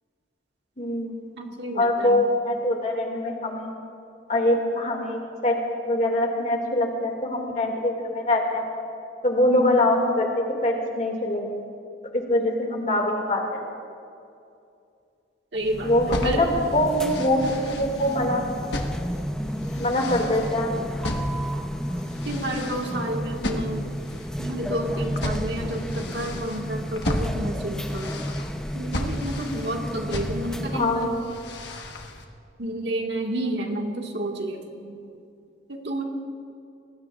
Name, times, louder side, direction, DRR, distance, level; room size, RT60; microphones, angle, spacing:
voice 1, 0.8-1.1 1.8-3.7 4.3-5.6 5.8-8.6 9.2-11.6 12.1-13.6 15.8-18.4 19.8-20.7 30.7-31.3, left 1 dB, 40° left, 1 dB, 2.2 m, -23 dB
voice 2, 1.4-2.3 9.4-9.9 12.4-12.5 15.5-16.5 22.2-24.0 24.4-28.2 28.7-31.1 32.6-35.0 35.7-36.0, right 1 dB, 65° right, 1 dB, 1.8 m, -30 dB
sound 1, 15.6-31.2, equal, 5° left, 0.7 m, -32 dB
sound 2, 16.0-32.2, left 1 dB, 65° left, 1.3 m, -35 dB
26.0 x 19.5 x 2.5 m, 2.5 s
head